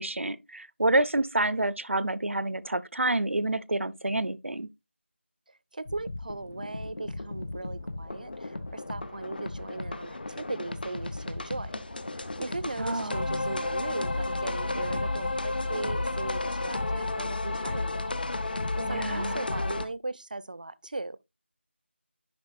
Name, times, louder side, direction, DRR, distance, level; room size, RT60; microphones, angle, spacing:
voice 1, 0.0-4.7 12.8-13.2 18.8-19.4, right 2 dB, 80° right, 0.6 m, -28 dB
voice 2, 5.5-11.8 12.4-18.1 18.4-21.2, right 2 dB, 40° right, 0.4 m, -38 dB
sound 1, 5.9-19.9, left 2 dB, 45° left, 0.8 m, -33 dB
sound 2, 11.4-16.7, left 1 dB, 15° left, 0.5 m, -49 dB
10.5 x 4.9 x 2.5 m
figure-of-eight pair, 170°, 7 cm